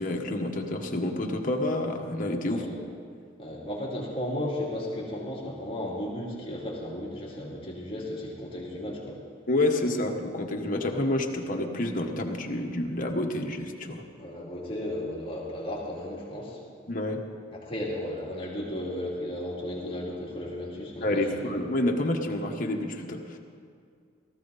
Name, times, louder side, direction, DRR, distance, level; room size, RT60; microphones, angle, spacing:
voice 1, 0.0-2.6 9.5-14.1 16.9-17.2 21.0-23.4, left 1 dB, 45° left, 2 dB, 1.4 m, -28 dB
voice 2, 3.4-9.2 14.2-16.6 17.6-21.5, left 1 dB, 30° left, -5 dB, 2.9 m, -34 dB
17.5 x 14.5 x 4.2 m, 2.2 s
head